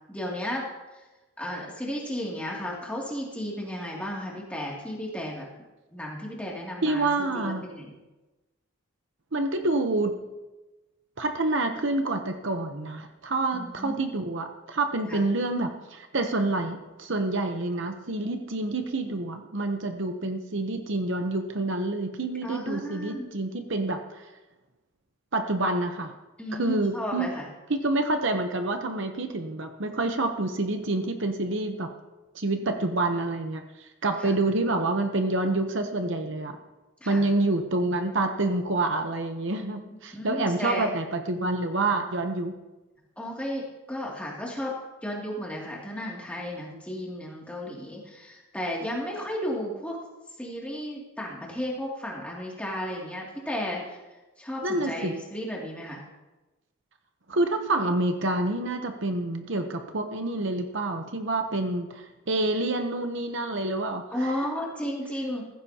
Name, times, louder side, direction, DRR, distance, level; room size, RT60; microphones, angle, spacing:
voice 1, 0.1-0.7 1.4-5.5 5.9-7.1 7.3-7.9 13.5-14.0 15.1-15.2 22.4-23.3 26.4-27.5 32.7-33.0 34.2-34.4 37.0-37.2 40.1-40.9 43.2-44.7 45.0-50.0 50.4-54.0 54.4-56.0 64.1-65.4, equal, 5° left, -3 dB, 2.5 m, -34 dB
voice 2, 6.8-7.6 9.3-10.2 11.2-24.3 25.3-26.1 26.5-27.4 27.7-31.9 32.3-36.6 37.1-42.5 54.6-55.1 57.3-64.4, right 2 dB, 55° right, 6 dB, 0.9 m, -27 dB
15.5 x 15.0 x 2.9 m, 1.1 s
head